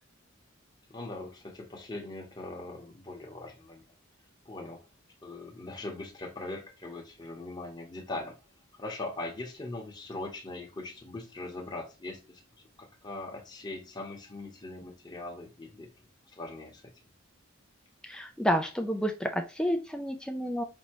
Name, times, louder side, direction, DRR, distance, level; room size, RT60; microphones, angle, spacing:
voice 1, 0.9-3.8 4.4-4.8 5.2-8.3 8.8-12.4 12.8-15.9 16.3-16.8, left 2 dB, 20° left, 0 dB, 0.9 m, -40 dB
voice 2, 18.0-20.6, equal, 5° left, 5 dB, 0.4 m, -30 dB
5.3 x 2.8 x 2.9 m, 0.31 s
head